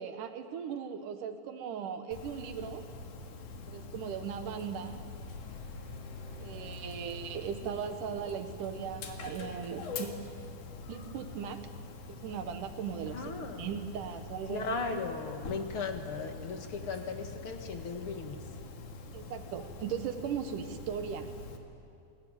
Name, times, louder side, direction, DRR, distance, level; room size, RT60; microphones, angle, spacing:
voice 1, 0.0-2.9 3.7-5.0 6.4-10.2 10.9-11.6 12.1-14.8 19.1-21.3, right 7 dB, 85° right, 7 dB, 2.8 m, -38 dB
Dog, 2.1-21.6, left 4 dB, 80° left, 3.4 m, -45 dB
sound 1, 5.2-8.2, left 1 dB, 25° left, 4.3 m, -50 dB
voice 2, 13.1-13.7 14.5-18.4, left 4 dB, 50° left, 5 dB, 2.3 m, -37 dB
28.0 x 20.5 x 9.0 m, 2.6 s
omnidirectional pair, 3.6 m